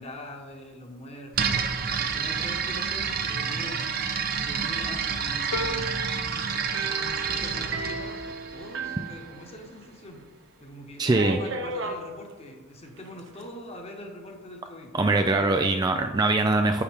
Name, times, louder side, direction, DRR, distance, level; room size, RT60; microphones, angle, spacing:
voice 1, 0.0-6.0 6.8-10.2 10.6-15.0 15.3-15.6, left 1 dB, 30° left, 3 dB, 1.2 m, -43 dB
sound 1, 1.3-9.1, right 6 dB, 45° right, 0.7 m, -29 dB
sound 2, 5.5-10.3 10.8-11.5 11.8-11.9, left 1 dB, 65° left, 0.7 m, -39 dB
sound 3, 6.7-9.9 10.2-10.3 11.1-12.0 13.0-13.4, right 3 dB, 60° right, 0.9 m, -35 dB
voice 2, 11.0-11.4 14.9-16.8, right 2 dB, 20° right, 5 dB, 0.3 m, -22 dB
9.9 x 6.8 x 3.5 m, 1.2 s
head